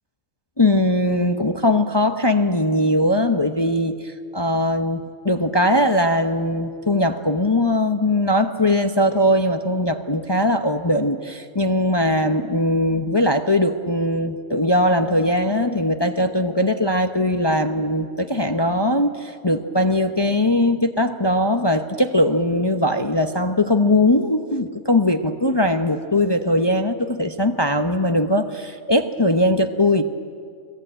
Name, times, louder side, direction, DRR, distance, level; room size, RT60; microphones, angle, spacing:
voice 1, 0.6-30.0, left 1 dB, 25° left, 7 dB, 0.8 m, -20 dB
29.0 x 20.5 x 9.0 m, 2.2 s
omnidirectional pair, 1.4 m